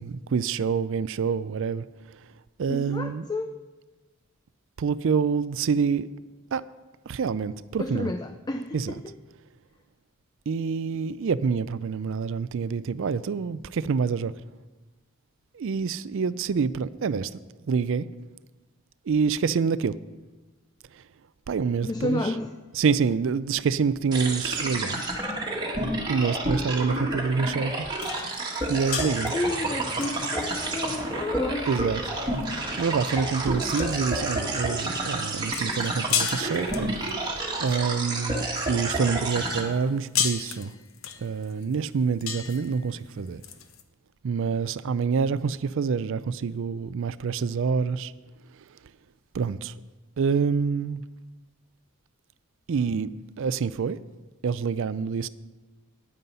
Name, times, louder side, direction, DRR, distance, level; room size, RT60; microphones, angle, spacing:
voice 1, 0.0-1.8 2.6-3.3 4.8-6.1 6.5-6.6 7.1-8.1 8.7-9.0 10.5-14.3 15.5-17.3 17.7-18.1 19.1-19.9 21.5-22.2 22.7-25.0 26.1-27.9 28.7-29.3 31.7-32.0 32.8-37.0 37.6-40.7 41.2-43.4 44.2-48.1 49.3-49.7 50.2-51.0 52.7-53.1 53.4-54.0 54.4-55.3, right 5 dB, 60° right, 0.4 m, -26 dB
voice 2, 2.7-3.6 7.8-9.1 21.8-22.5 29.3-31.7, left 2 dB, 20° left, 0.4 m, -31 dB
sound 1, 24.1-39.6, right 2 dB, 20° right, 1.6 m, -30 dB
sound 2, 28.0-38.6 39.1-43.8, left 8 dB, 65° left, 0.8 m, -35 dB
9.7 x 9.4 x 5.5 m
head